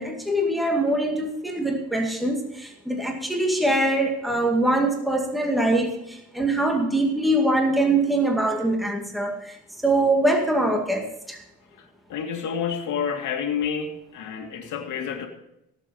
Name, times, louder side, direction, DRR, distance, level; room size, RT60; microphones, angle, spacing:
voice 1, 0.0-9.5 9.8-11.4, right 1 dB, ahead, 1 dB, 2.1 m, -23 dB
voice 2, 12.1-15.3, left 7 dB, 80° left, 3 dB, 2.1 m, -29 dB
16.5 x 7.3 x 5.3 m, 0.83 s
cardioid pair, 90°, 30 cm